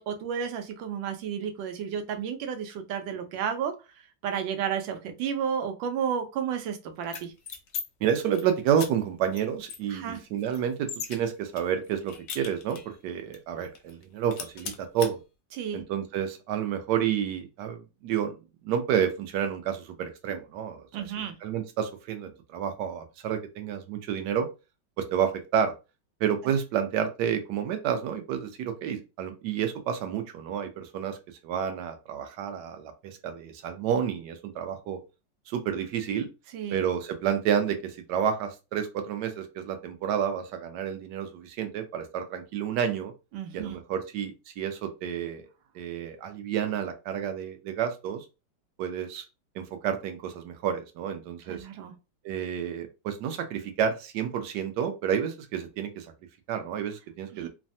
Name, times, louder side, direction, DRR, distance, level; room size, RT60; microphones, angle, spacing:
voice 1, 0.0-3.7 4.2-7.3 9.9-10.2 15.5-15.8 20.9-21.4 36.5-36.8 43.3-43.8 51.5-51.9 57.3-57.5, right 8 dB, 90° right, 6 dB, 1.4 m, -32 dB
sound 1, 7.0-7.8 8.2-8.4 8.8-8.9 9.3-9.4 9.7-11.2 11.6-13.0 13.3-13.4 13.7-14.0 14.3-15.1, left 6 dB, 70° left, 0.8 m, -38 dB
voice 2, 8.0-15.2 15.7-18.3 18.6-20.9 21.2-24.5 25.0-25.7 26.2-31.2 31.4-35.0 35.5-36.3 36.7-43.1 43.5-45.5 45.7-48.3 48.8-49.2 49.5-51.7 52.2-56.1 56.5-57.5, right 8 dB, 70° right, 7 dB, 1.1 m, -30 dB
3.3 x 2.1 x 2.6 m, 0.29 s
omnidirectional pair, 2.0 m